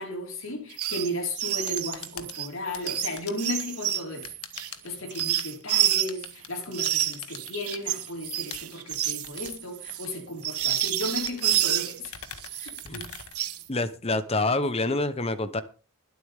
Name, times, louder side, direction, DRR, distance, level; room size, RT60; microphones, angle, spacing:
voice 1, 0.0-4.3 4.6-12.1 12.6-13.1, left 1 dB, 65° left, 4.9 m, -35 dB
sound 1, 0.7-1.1 1.3-6.3 6.7-12.0 12.4-13.6, right 13 dB, 90° right, 1.2 m, -29 dB
sound 2, 1.4-14.0, left 8 dB, 80° left, 1.7 m, -45 dB
voice 2, 13.7-15.6, left 2 dB, 25° left, 1.0 m, -27 dB
22.0 x 8.2 x 3.7 m
head